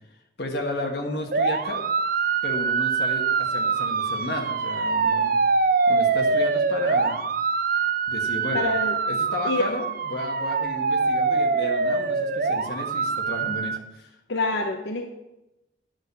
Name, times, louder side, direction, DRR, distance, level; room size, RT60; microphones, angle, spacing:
voice 1, 0.4-1.8 2.4-5.4 5.9-7.2 8.1-8.6 9.1-14.1, left 1 dB, 60° left, 2 dB, 1.6 m, -33 dB
sound 1, 1.3-13.8, right 4 dB, 50° right, 0.5 m, -24 dB
voice 2, 8.5-8.9 9.4-9.6 14.3-15.1, left 2 dB, 80° left, 2 dB, 0.9 m, -25 dB
9.6 x 6.5 x 7.0 m, 0.93 s
head